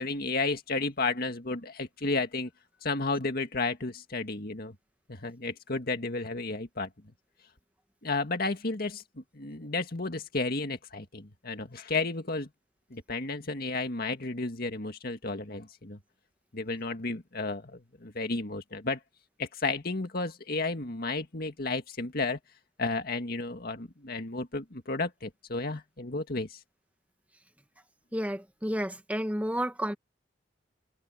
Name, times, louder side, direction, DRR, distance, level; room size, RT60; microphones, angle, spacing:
voice 1, 0.0-2.5 2.8-4.8 5.1-6.9 8.0-12.5 12.9-16.0 16.5-19.0 19.4-22.4 22.8-26.6, left 3 dB, 55° left, 2.0 m, -32 dB
voice 2, 28.1-29.9, equal, 10° right, 2.2 m, -31 dB
head